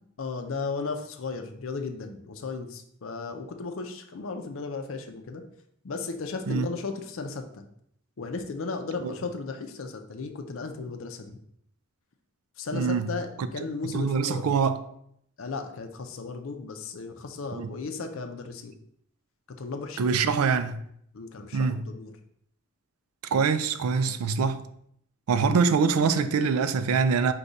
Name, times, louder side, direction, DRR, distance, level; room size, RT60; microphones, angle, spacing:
voice 1, 0.2-5.4 5.8-7.6 8.2-11.4 12.6-14.5 15.4-18.7 19.5-20.2 21.1-22.1 25.4-25.5, left 4 dB, 65° left, 0.5 m, -35 dB
voice 2, 12.7-13.1 13.8-14.8 17.5-17.7 20.0-20.8 21.5-21.8 23.3-24.6 25.3-27.3, right 5 dB, 85° right, 0.4 m, -24 dB
4.9 x 2.3 x 3.9 m
head